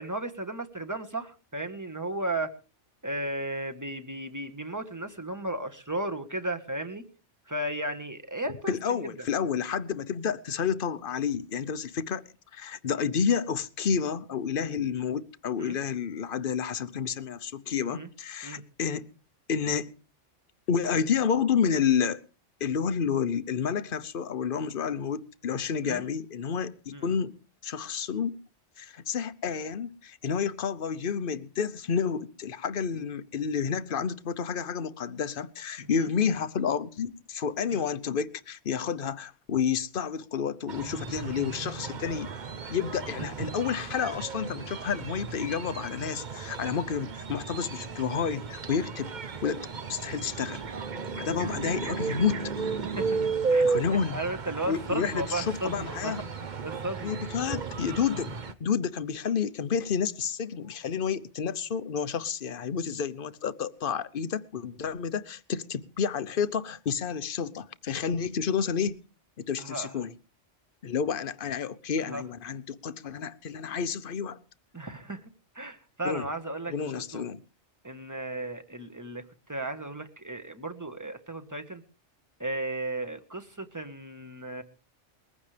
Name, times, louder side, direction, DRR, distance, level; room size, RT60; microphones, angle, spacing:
voice 1, 0.0-2.5 3.0-7.0 7.5-9.3 15.6-15.8 17.9-18.1 18.4-18.6 25.8-26.0 26.9-27.2 36.0-36.1 37.7-37.8 52.8-53.2 53.5-57.2 69.6-70.0 72.0-72.2 74.7-75.2 75.5-77.2 77.8-79.2 79.5-81.8 82.4-84.6, right 1 dB, 15° right, 1.4 m, -35 dB
voice 2, 8.7-19.1 19.5-19.9 20.7-22.2 22.6-27.3 27.6-28.4 28.8-42.3 42.7-49.1 49.4-50.6 51.1-52.5 53.6-54.2 54.7-56.2 57.0-69.0 69.4-70.1 70.8-74.4 76.0-76.2 76.7-77.4, left 7 dB, 50° left, 1.0 m, -30 dB
sound 1, 40.7-58.5, right 4 dB, 40° right, 1.0 m, -34 dB
21.0 x 15.0 x 3.3 m
omnidirectional pair, 1.2 m